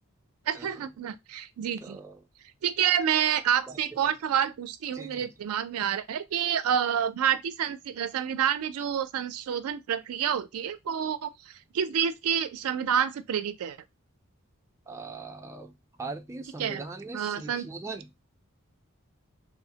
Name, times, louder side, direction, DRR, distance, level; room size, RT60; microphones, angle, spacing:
voice 1, 0.5-2.0 2.6-13.8 16.6-16.9 17.1-17.7, right 9 dB, 85° right, 0.4 m, -28 dB
voice 2, 1.8-2.1 3.7-3.8 4.9-5.3 14.9-15.7 16.0-18.1, right 3 dB, 15° right, 0.3 m, -40 dB
3.1 x 2.0 x 2.8 m
head